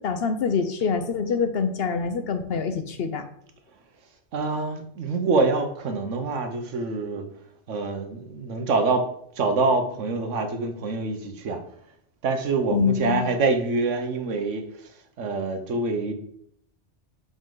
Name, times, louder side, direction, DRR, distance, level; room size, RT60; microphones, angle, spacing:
voice 1, 0.0-3.3 12.7-13.3, left 5 dB, 60° left, 8 dB, 0.8 m, -25 dB
voice 2, 4.3-7.2 7.7-9.0 9.4-11.6 12.2-14.6 15.2-16.1, right 3 dB, 85° right, 7 dB, 1.2 m, -25 dB
6.1 x 5.4 x 3.8 m, 0.68 s
omnidirectional pair, 1.2 m